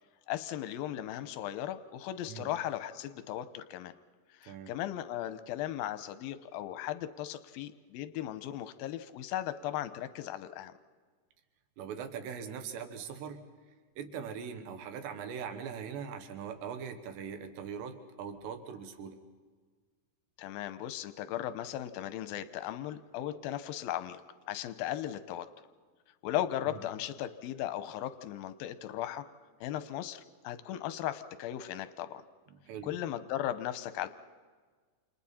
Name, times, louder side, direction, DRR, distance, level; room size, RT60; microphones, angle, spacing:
voice 1, 0.3-3.9 4.4-10.7 20.4-24.2 24.5-25.5 26.2-29.2 29.6-32.2 32.8-34.1, left 12 dB, 75° left, 11 dB, 2.3 m, -37 dB
voice 2, 11.8-13.4 14.0-19.2 26.7-26.8 32.5-33.0, right 7 dB, 80° right, 7 dB, 3.7 m, -41 dB
29.5 x 28.0 x 4.3 m, 1.5 s
omnidirectional pair, 4.9 m